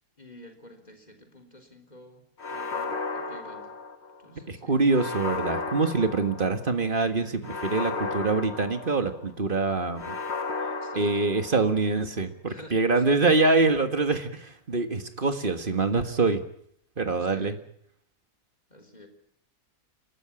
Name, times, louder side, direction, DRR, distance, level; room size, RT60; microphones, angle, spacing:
voice 1, 0.2-3.7 4.2-4.8 10.8-11.3 12.5-13.2 17.3-17.6 18.7-19.1, equal, 30° left, 5 dB, 3.6 m, -49 dB
sound 1, 2.4-4.3 4.9-6.7 7.4-9.3 10.0-11.8, left 4 dB, 45° left, 1.6 m, -34 dB
voice 2, 4.5-10.2 11.0-16.4 17.0-17.6, right 3 dB, 35° right, 8 dB, 1.8 m, -25 dB
28.0 x 13.0 x 8.7 m, 0.69 s
omnidirectional pair, 1.6 m